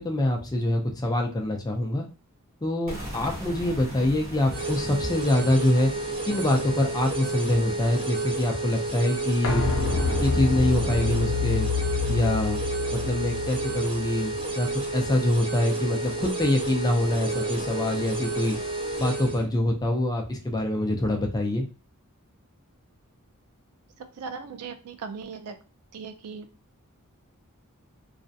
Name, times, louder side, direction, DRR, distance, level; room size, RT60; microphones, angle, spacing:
voice 1, 0.0-2.1 2.6-5.9 6.3-9.6 10.2-11.7 12.1-12.6 12.9-18.6 19.0-21.7, left 1 dB, 20° left, 2 dB, 0.4 m, -25 dB
sound 1, 2.9-8.7, equal, 40° right, 1.0 m, -41 dB
sound 2, 4.5-19.4, right 3 dB, 25° right, 0.7 m, -31 dB
sound 3, 9.4-15.1 15.4-15.5, left 4 dB, 65° left, 0.7 m, -28 dB
voice 2, 24.1-25.5 25.9-26.5, right 5 dB, 85° right, 7 dB, 0.4 m, -38 dB
2.4 x 2.1 x 2.6 m, 0.34 s
head